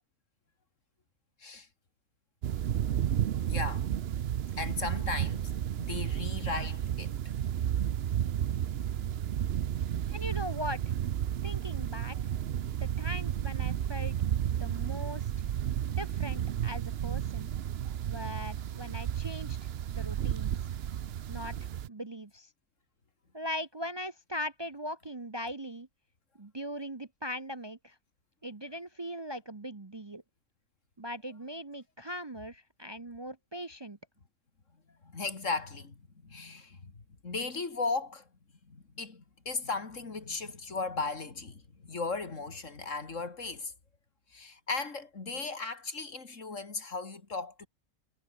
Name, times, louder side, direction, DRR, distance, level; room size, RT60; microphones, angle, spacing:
sound 1, 2.4-21.9, right 10 dB, 60° right, 0.8 m, -32 dB
voice 1, 3.5-3.9 4.6-7.1 35.0-36.0 36.2-38.2 38.7-43.7 44.3-47.7, left 4 dB, 70° left, 3.1 m, -36 dB
voice 2, 10.1-10.8 11.4-12.2 12.8-14.1 14.4-15.3 15.9-17.5 18.1-19.6 19.9-20.5 21.3-22.5 23.3-25.9 26.4-27.9 28.4-30.2 31.0-34.0, equal, 20° right, 0.9 m, -40 dB
omnidirectional pair, 1.3 m